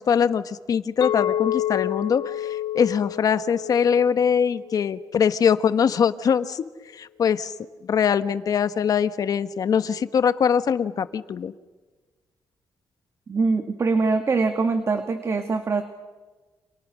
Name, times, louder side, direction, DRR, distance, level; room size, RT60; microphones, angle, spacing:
voice 1, 0.0-2.2 2.7-6.6 7.0-7.5 7.8-11.5, left 7 dB, 55° left, 12 dB, 1.2 m, -22 dB
Chink clink, 1.0-5.3, left 12 dB, 80° left, 1.0 m, -29 dB
voice 2, 13.3-15.8, right 4 dB, 40° right, 7 dB, 1.8 m, -23 dB
29.5 x 28.0 x 6.3 m, 1.3 s
cardioid pair, 115°, 7 cm